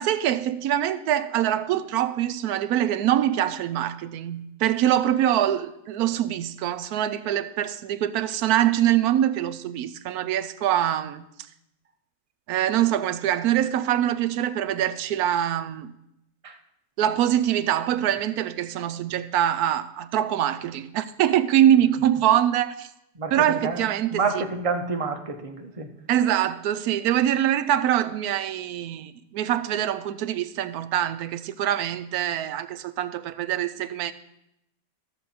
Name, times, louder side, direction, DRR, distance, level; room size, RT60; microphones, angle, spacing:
voice 1, 0.0-11.2 12.5-15.9 17.0-22.9 23.3-24.2 26.1-34.1, right 11 dB, 75° right, 1.0 m, -24 dB
voice 2, 23.2-23.8 24.1-25.9, right 4 dB, 35° right, 0.6 m, -28 dB
13.5 x 7.0 x 4.2 m
omnidirectional pair, 1.7 m